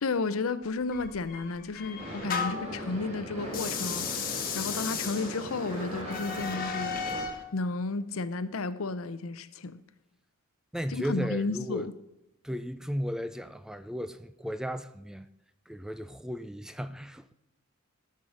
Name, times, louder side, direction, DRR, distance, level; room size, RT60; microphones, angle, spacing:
voice 1, 0.0-4.3 4.5-7.0 7.5-9.8 10.9-11.9, left 3 dB, 90° left, 0.7 m, -32 dB
sound 1, 0.9-2.8 3.5-7.4, left 6 dB, 45° left, 1.3 m, -35 dB
sound 2, 2.0-7.2, equal, 35° right, 4.5 m, -39 dB
voice 2, 10.7-11.9 12.4-15.3 15.7-17.3, equal, 5° right, 0.4 m, -35 dB
13.5 x 5.7 x 6.2 m
head